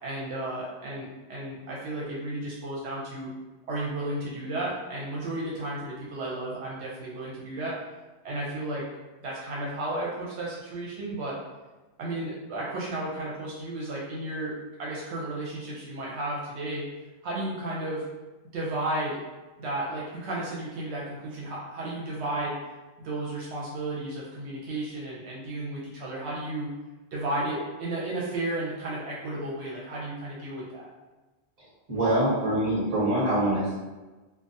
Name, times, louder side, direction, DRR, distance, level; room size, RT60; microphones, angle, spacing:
voice 1, 0.0-3.3 3.7-7.8 8.2-8.8 9.2-11.4 12.0-16.9 17.2-18.1 18.5-19.2 19.6-22.5 23.0-26.7 27.1-30.9, right 1 dB, 80° right, -5 dB, 0.9 m, -33 dB
voice 2, 31.9-33.7, right 1 dB, 35° right, -9 dB, 1.1 m, -24 dB
2.3 x 2.1 x 2.6 m, 1.2 s
omnidirectional pair, 1.1 m